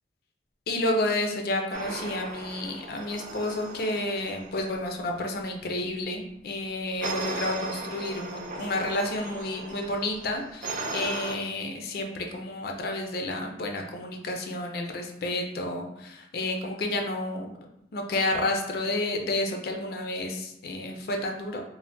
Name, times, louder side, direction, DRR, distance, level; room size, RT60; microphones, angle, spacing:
voice 1, 0.7-17.5 17.9-21.6, left 2 dB, 55° left, 2 dB, 0.4 m, -30 dB
sound 1, 1.7-4.9 7.0-11.4, right 2 dB, 40° right, 0.3 m, -37 dB
3.3 x 2.1 x 2.6 m, 0.78 s
head